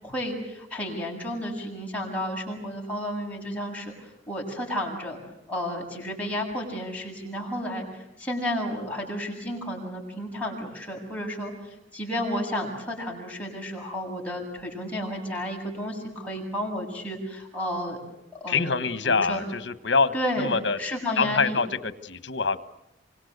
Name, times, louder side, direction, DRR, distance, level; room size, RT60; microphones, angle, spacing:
voice 1, 0.0-3.9 4.3-5.2 5.5-7.9 8.2-18.0 18.4-19.4 20.1-20.5 20.8-21.6, equal, 10° left, -2 dB, 7.7 m, -32 dB
voice 2, 18.5-20.8 21.2-21.7 22.0-22.6, left 4 dB, 65° left, 13 dB, 1.4 m, -25 dB
27.5 x 25.0 x 8.1 m, 0.85 s
head